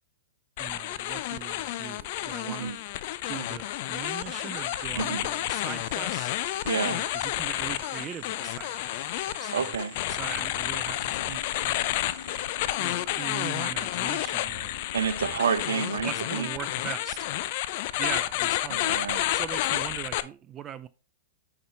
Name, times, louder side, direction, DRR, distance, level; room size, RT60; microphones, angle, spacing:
sound 1, 0.6-20.2, left 15 dB, 45° left, 0.5 m, -30 dB
voice 1, 0.6-2.7 3.3-6.3 6.9-8.7 9.3-9.5 10.1-11.8 12.8-14.7 15.3-15.5 16.0-17.3 18.0-18.8 19.3-20.9, right 9 dB, 25° right, 0.4 m, -40 dB
sound 2, 4.1-12.5, right 9 dB, 50° right, 1.2 m, -50 dB
voice 2, 4.9-5.2 6.6-7.0 9.5-10.0 14.9-16.5 18.7-19.3, right 6 dB, 65° right, 0.8 m, -29 dB
sound 3, 10.2-18.0, left 7 dB, 65° left, 1.6 m, -49 dB
9.2 x 5.8 x 3.3 m
figure-of-eight pair, 105°, 0 cm